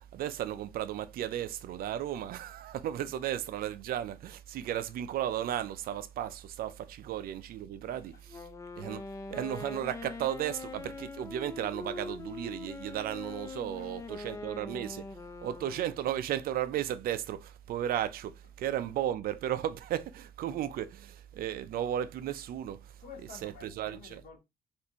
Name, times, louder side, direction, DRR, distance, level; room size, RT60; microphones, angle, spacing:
voice 1, 0.1-8.4 8.8-9.0 9.3-15.0 15.4-22.9 23.4-24.2, right 11 dB, 60° right, 0.5 m, -34 dB
Wind instrument woodwind instrument, 8.3-16.2, left 3 dB, 20° left, 0.4 m, -43 dB
voice 2, 13.7-14.4 23.0-24.4, left 5 dB, 60° left, 1.8 m, -52 dB
4.2 x 2.6 x 2.9 m
cardioid pair, 110°, 17 cm